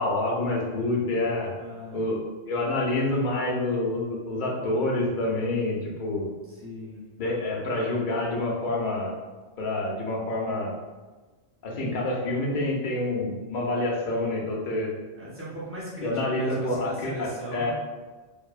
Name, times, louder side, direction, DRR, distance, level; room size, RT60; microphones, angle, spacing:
voice 1, 0.0-1.5 1.9-2.2 2.5-6.3 7.2-9.2 9.6-10.8 11.6-14.9 16.0-17.7, left 2 dB, 55° left, -2 dB, 0.6 m, -27 dB
voice 2, 1.6-2.0 6.5-7.0 15.2-17.7, right 1 dB, 15° right, -8 dB, 0.5 m, -38 dB
2.5 x 2.1 x 2.4 m, 1.3 s
omnidirectional pair, 1.1 m